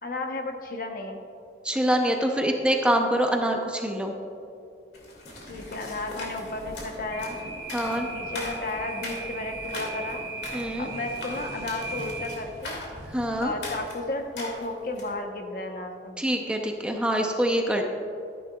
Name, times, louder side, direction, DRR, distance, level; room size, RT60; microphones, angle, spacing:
voice 1, 0.0-1.2 5.5-7.4 8.1-10.3 10.8-12.8 13.4-16.2, left 2 dB, 50° left, 4 dB, 0.9 m, -33 dB
voice 2, 1.6-4.1 7.7-8.1 10.5-10.9 13.1-13.5 16.2-17.8, right 1 dB, 5° right, 2 dB, 0.6 m, -25 dB
sound 1, 4.9-15.2, left 2 dB, 70° left, 2.2 m, -40 dB
sound 2, 5.3-13.9, right 2 dB, 40° right, 1.9 m, -39 dB
13.0 x 10.5 x 2.3 m, 2.6 s
head